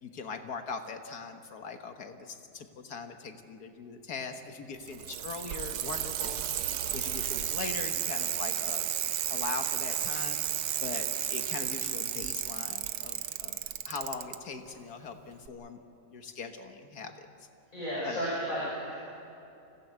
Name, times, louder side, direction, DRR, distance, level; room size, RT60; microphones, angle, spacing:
voice 1, 0.0-8.9 9.3-15.8 16.1-17.5 18.0-18.2, left 5 dB, 80° left, 6 dB, 1.8 m, -41 dB
Bicycle, 4.7-14.4 15.5-15.6, right 11 dB, 85° right, 1.3 m, -33 dB
voice 2, 17.7-18.9, equal, 55° left, -7 dB, 7.1 m, -33 dB
28.0 x 16.5 x 8.1 m, 2.8 s
omnidirectional pair, 1.6 m